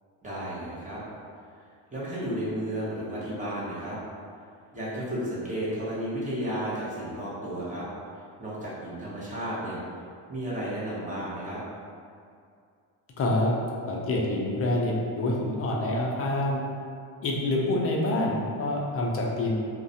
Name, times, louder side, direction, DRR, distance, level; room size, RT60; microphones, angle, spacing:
voice 1, 0.2-1.0 1.9-4.0 4.7-7.9 8.4-9.8 10.3-11.6, right 1 dB, 15° right, -8 dB, 0.7 m, -33 dB
voice 2, 13.2-13.6 13.9-16.6 17.2-19.6, left 1 dB, 35° left, -2 dB, 0.4 m, -26 dB
2.4 x 2.1 x 2.7 m, 2.3 s
cardioid pair, 110°, 45 cm